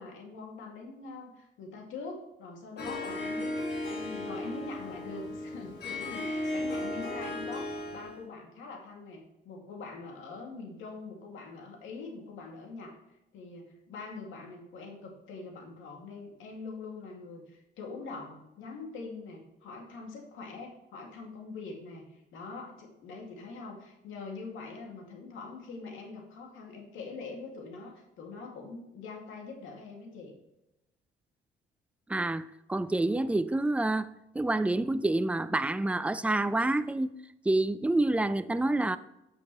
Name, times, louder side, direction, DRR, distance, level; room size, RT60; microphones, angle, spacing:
voice 1, 0.0-3.6 3.9-13.0 13.3-30.3, left 3 dB, 85° left, 2.3 m, -44 dB
Harp, 2.8-8.2, left 1 dB, 60° left, 2.9 m, -35 dB
voice 2, 32.1-34.1 34.3-37.1 37.5-39.0, right 2 dB, 5° right, 0.4 m, -28 dB
8.6 x 6.6 x 3.1 m
cardioid pair, 90°, 20 cm